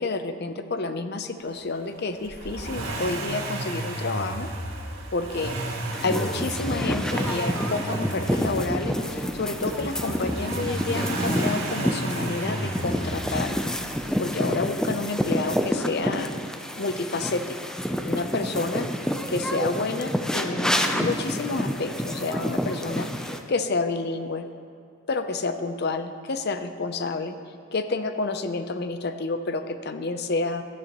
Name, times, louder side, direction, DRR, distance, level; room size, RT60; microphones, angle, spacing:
voice 1, 0.0-4.5 5.1-5.6 6.0-13.6 14.2-16.3 16.7-17.8 18.1-18.9 19.3-24.4 25.1-27.3 27.7-30.6, left 3 dB, 50° left, 9 dB, 0.6 m, -29 dB
Accelerating revving vroom, 2.2-14.2 15.5-15.6, right 2 dB, 80° right, 1.9 m, -33 dB
sound 1, 5.9-23.4, equal, 5° left, 0.5 m, -28 dB
16.5 x 12.0 x 3.0 m, 2.2 s
head